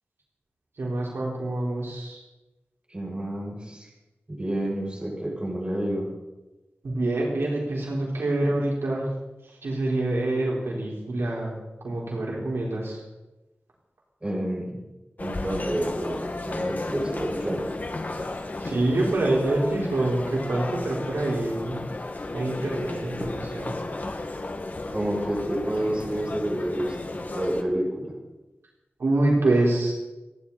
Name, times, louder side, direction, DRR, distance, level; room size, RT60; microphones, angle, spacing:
voice 1, 0.8-2.2 6.8-9.1 9.5-11.5 11.8-13.0 18.6-21.8 22.3-23.7 29.0-29.9, right 2 dB, 85° right, -3 dB, 4.7 m, -26 dB
voice 2, 2.9-3.9 4.3-6.1 14.2-14.8 15.2-17.6 24.9-28.2, right 1 dB, 25° right, -3 dB, 7.5 m, -29 dB
sound 1, 15.2-27.6, left 2 dB, 45° left, 2.0 m, -34 dB
30.0 x 11.0 x 4.4 m, 1.0 s
wide cardioid pair, 80°, 4 cm